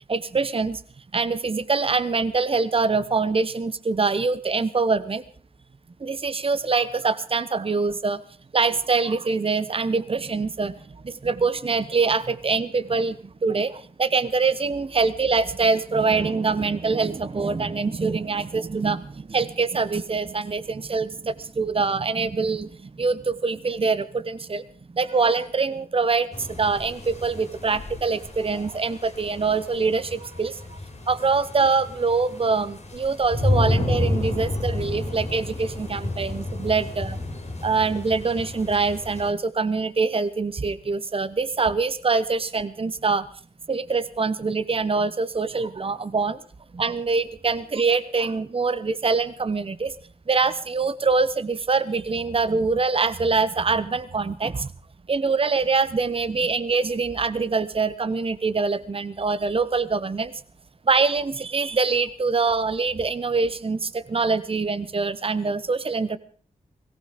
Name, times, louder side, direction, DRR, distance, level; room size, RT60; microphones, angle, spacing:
voice 1, 0.1-0.8 1.1-5.2 6.0-8.2 8.5-24.6 24.9-30.8 31.1-37.2 37.6-43.3 43.7-46.4 46.7-49.9 50.3-54.7 55.1-60.3 60.9-66.2, right 4 dB, 40° right, 12 dB, 1.0 m, -24 dB
sound 1, 26.3-39.3, left 2 dB, 50° left, 3.3 m, -30 dB
18.0 x 15.0 x 5.0 m, 0.43 s
cardioid pair, 45°, 15 cm